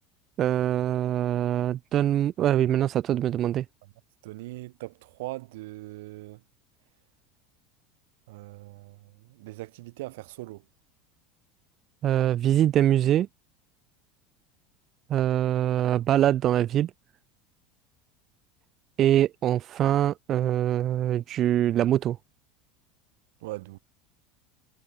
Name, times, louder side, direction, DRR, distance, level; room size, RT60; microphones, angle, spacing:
voice 1, 0.4-3.6 12.0-13.3 15.1-16.9 19.0-22.2, right 12 dB, 40° right, 0.8 m, -23 dB
voice 2, 4.2-6.4 8.3-10.6 23.4-23.8, right 20 dB, 80° right, 5.1 m, -40 dB
supercardioid pair, 125°, 0 cm